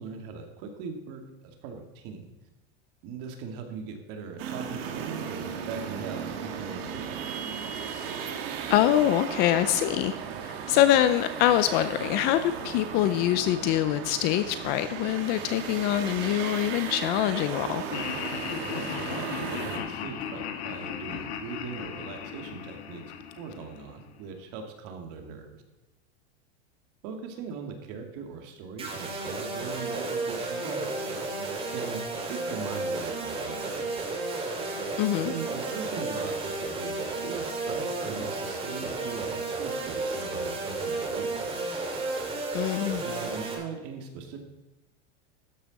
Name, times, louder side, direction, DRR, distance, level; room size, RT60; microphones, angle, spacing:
voice 1, 0.0-2.3 3.0-7.3 18.6-23.0 23.4-25.6 27.0-30.9 31.4-33.9 35.2-41.5 43.0-44.4, right 5 dB, 45° right, 4 dB, 2.2 m, -40 dB
sound 1, 4.4-19.8, right 7 dB, 60° right, 2.0 m, -36 dB
voice 2, 8.7-10.1 10.4-17.8 35.0-35.3 42.5-43.0, left 12 dB, 30° left, 12 dB, 0.4 m, -24 dB
Laughter, 17.9-24.1, left 8 dB, 80° left, 1.8 m, -36 dB
sound 2, 28.8-43.6, right 3 dB, 15° right, 2.1 m, -32 dB
13.0 x 9.9 x 4.1 m, 1.1 s
supercardioid pair, 160°, 32 cm